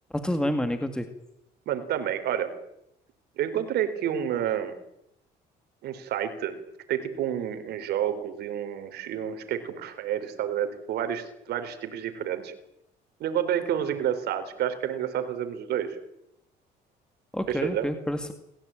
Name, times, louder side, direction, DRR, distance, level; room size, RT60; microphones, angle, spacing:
voice 1, 0.1-1.1 17.3-18.3, left 1 dB, 5° left, 7 dB, 2.1 m, -28 dB
voice 2, 1.7-2.5 3.4-4.7 5.8-6.6 6.9-12.5 13.2-16.0 17.5-17.9, right 10 dB, 75° right, 10 dB, 3.9 m, -29 dB
28.5 x 16.0 x 9.0 m, 0.80 s
cardioid pair, 110°, 17 cm